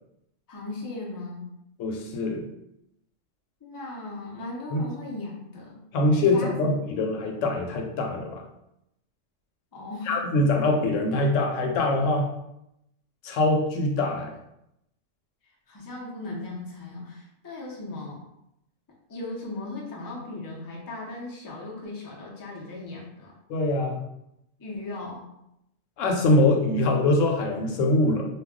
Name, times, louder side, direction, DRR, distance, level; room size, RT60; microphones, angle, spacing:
voice 1, 0.5-1.5 3.6-5.8 6.3-6.7 9.7-10.2 15.7-18.2 19.1-23.3 24.6-25.2, left 2 dB, 30° left, -3 dB, 0.4 m, -37 dB
voice 2, 1.8-2.4 4.7-4.8 5.9-8.4 10.1-12.3 13.2-14.3 23.5-24.0 26.0-28.2, left 2 dB, 90° left, 2 dB, 0.9 m, -23 dB
2.3 x 2.2 x 3.6 m, 0.82 s
omnidirectional pair, 1.3 m